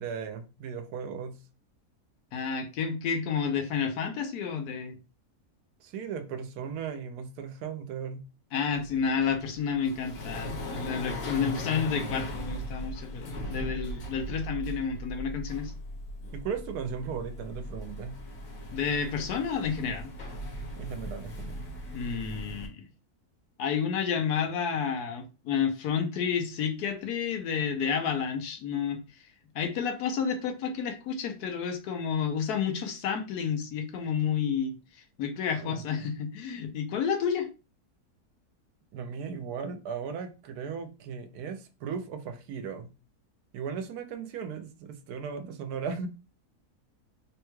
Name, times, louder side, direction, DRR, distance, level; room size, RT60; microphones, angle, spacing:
voice 1, 0.0-1.4 5.8-8.2 16.3-18.2 20.8-21.6 35.6-36.1 38.9-42.9 43.5-46.1, right 6 dB, 80° right, 1.1 m, -37 dB
voice 2, 2.3-5.0 8.5-15.7 18.7-20.1 21.9-22.9 23.6-29.0 29.5-34.7 35.2-37.5, left 6 dB, 90° left, 1.2 m, -30 dB
sound 1, 8.6-22.7, equal, 65° left, 1.2 m, -38 dB
3.4 x 2.2 x 3.0 m
omnidirectional pair, 1.6 m